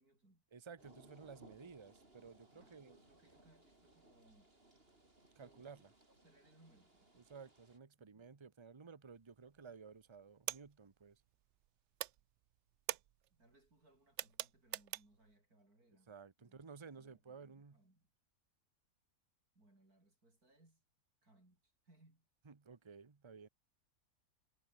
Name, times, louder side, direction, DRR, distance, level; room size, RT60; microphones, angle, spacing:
voice 1, 0.0-0.4 2.5-4.5 5.4-5.9 6.2-7.3 8.0-8.3 13.3-16.1 16.4-18.1 19.5-20.8 21.2-22.3, right 2 dB, 85° right, 8.2 m, -69 dB
voice 2, 0.5-3.0 5.3-5.9 7.3-11.2 16.1-17.8 22.4-23.5, right 5 dB, 20° right, 1.0 m, -55 dB
sound 1, 0.8-7.8, right 2 dB, 40° right, 5.3 m, -65 dB
sound 2, 9.2-9.7 10.0-11.7 11.9-15.3, right 13 dB, 65° right, 0.8 m, -45 dB
omnidirectional pair, 1.5 m